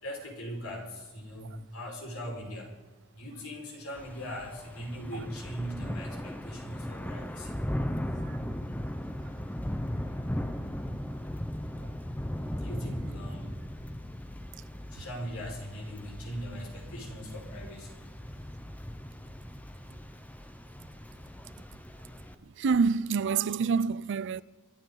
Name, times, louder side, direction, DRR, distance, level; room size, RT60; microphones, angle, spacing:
voice 1, 0.0-2.7 3.1-7.5 12.6-13.6 14.9-17.9, equal, 70° left, 5.0 m, -40 dB
Thunder / Rain, 3.9-22.3, equal, 5° left, 0.7 m, -38 dB
voice 2, 22.6-24.4, right 5 dB, 55° right, 0.4 m, -26 dB
24.0 x 13.5 x 3.9 m
head